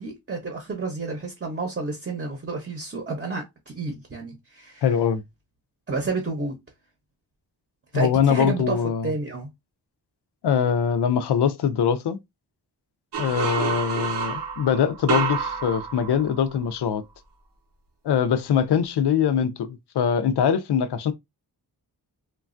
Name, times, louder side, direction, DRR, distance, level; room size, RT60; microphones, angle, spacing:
voice 1, 0.0-4.8 5.9-6.6 7.9-8.8 9.0-9.5, right 3 dB, 30° right, 0.7 m, -30 dB
voice 2, 4.8-5.2 7.9-9.1 10.4-12.2 13.2-17.0 18.0-21.1, left 7 dB, 85° left, 0.5 m, -22 dB
sound 1, 13.1-16.7, right 6 dB, 80° right, 0.7 m, -29 dB
3.1 x 2.3 x 2.5 m
wide cardioid pair, 140°, 39 cm